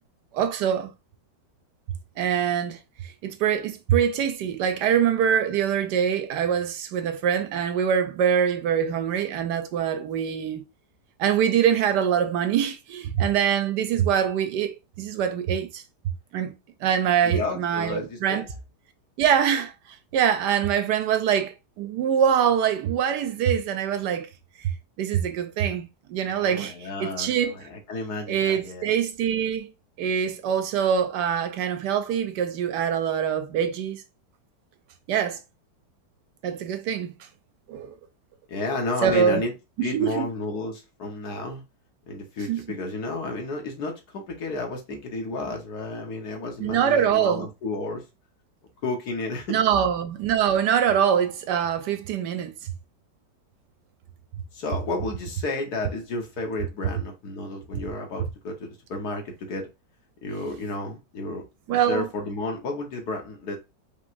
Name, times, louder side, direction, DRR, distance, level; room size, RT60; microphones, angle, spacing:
voice 1, 0.3-0.9 2.2-10.6 11.2-15.8 16.3-16.5 16.8-18.4 19.2-24.3 24.6-24.7 25.0-27.5 28.3-29.7 30.0-34.0 35.1-35.4 36.4-37.3 37.7-38.0 39.0-39.4 39.8-40.3 42.5-42.6 46.6-47.5 49.5-52.7 61.7-62.1, right 8 dB, 75° right, 1.2 m, -24 dB
voice 2, 17.2-18.5 26.4-28.9 38.5-39.5 39.8-41.6 42.1-48.0 48.8-49.6 54.5-59.7 60.2-61.4 61.7-63.6, left 2 dB, 65° left, 1.7 m, -32 dB
5.3 x 3.1 x 2.6 m
omnidirectional pair, 1.9 m